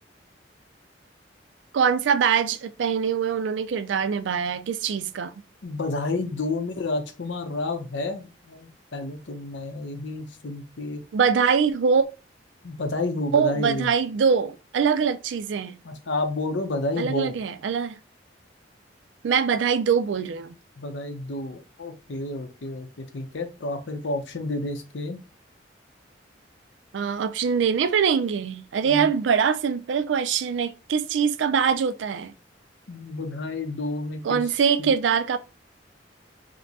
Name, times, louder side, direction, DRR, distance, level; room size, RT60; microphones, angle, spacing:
voice 1, 1.7-5.3 11.1-12.1 13.3-15.8 17.0-18.0 19.2-20.5 26.9-32.3 34.2-35.4, right 6 dB, 80° right, 0.4 m, -23 dB
voice 2, 5.6-11.0 12.6-13.9 15.8-17.3 20.8-22.9 23.1-25.2 28.8-29.1 32.9-34.4 34.8-34.9, left 2 dB, 80° left, 0.7 m, -30 dB
5.0 x 2.1 x 2.8 m
head